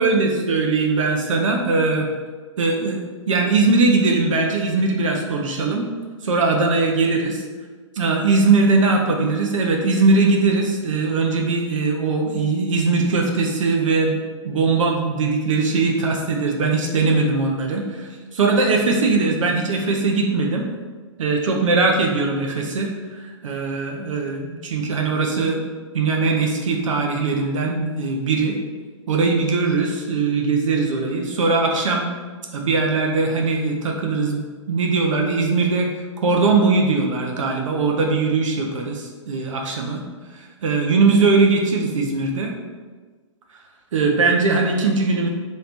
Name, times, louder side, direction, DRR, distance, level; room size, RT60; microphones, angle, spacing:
voice 1, 0.0-2.1 2.6-5.9 6.2-7.4 8.0-14.2 14.4-20.7 21.2-25.6 25.9-28.6 29.1-32.1 32.5-34.4 34.7-35.9 36.2-40.0 40.3-42.5 43.9-45.3, right 3 dB, 75° right, 1 dB, 0.7 m, -20 dB
3.2 x 2.8 x 4.3 m, 1.4 s
hypercardioid pair, 145°, 16 cm